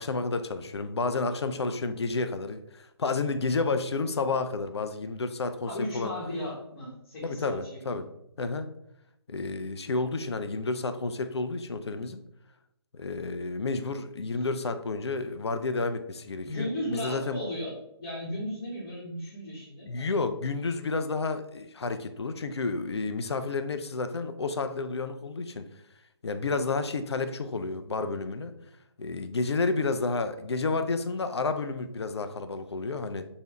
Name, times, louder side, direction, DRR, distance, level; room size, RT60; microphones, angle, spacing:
voice 1, 0.0-6.1 7.2-8.1 8.4-8.7 9.3-12.2 12.9-17.4 19.9-25.7 26.2-28.5 29.0-33.3, left 3 dB, 80° left, 9 dB, 0.4 m, -30 dB
voice 2, 5.7-8.0 16.5-17.7 18.0-20.1, left 1 dB, 40° left, -7 dB, 1.2 m, -35 dB
3.3 x 2.7 x 3.0 m, 0.77 s
figure-of-eight pair, 140°, 14 cm